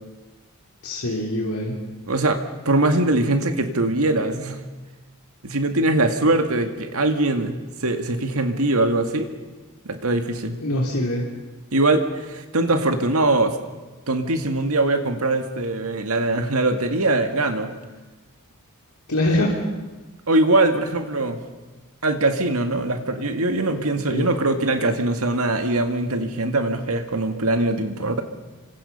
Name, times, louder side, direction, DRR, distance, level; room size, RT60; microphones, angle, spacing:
voice 1, 0.8-1.8 10.6-11.2 19.1-19.5 24.1-24.3, left 1 dB, 85° left, -2 dB, 3.5 m, -23 dB
voice 2, 2.1-4.6 5.4-9.3 9.9-10.6 11.7-13.5 14.1-17.7 20.3-21.4 22.0-28.2, right 2 dB, 75° right, 6 dB, 2.1 m, -22 dB
28.5 x 25.0 x 5.6 m, 1.2 s
head